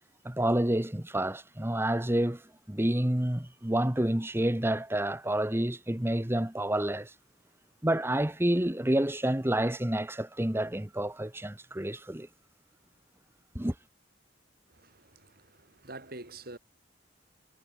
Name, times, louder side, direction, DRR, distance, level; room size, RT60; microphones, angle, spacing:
voice 1, 0.2-2.4 2.7-7.1 7.8-12.3 13.5-13.7, right 1 dB, 15° right, 1.2 m, -29 dB
voice 2, 14.7-16.6, right 2 dB, 55° right, 6.8 m, -46 dB
head